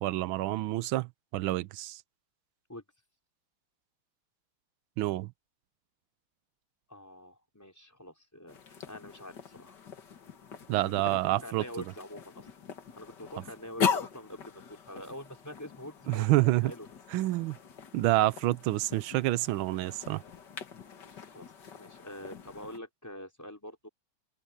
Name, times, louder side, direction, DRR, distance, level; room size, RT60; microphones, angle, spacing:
voice 1, 0.0-2.0 5.0-5.3 10.7-11.6 16.1-16.7 17.1-17.6 17.9-20.2, right 17 dB, 80° right, 1.4 m, -28 dB
voice 2, 6.9-9.8 10.8-12.5 13.0-16.9 21.0-21.5 21.8-23.9, left 1 dB, 10° left, 4.8 m, -46 dB
sound 1, 8.5-22.8, left 7 dB, 55° left, 2.2 m, -40 dB
open air
omnidirectional pair, 2.3 m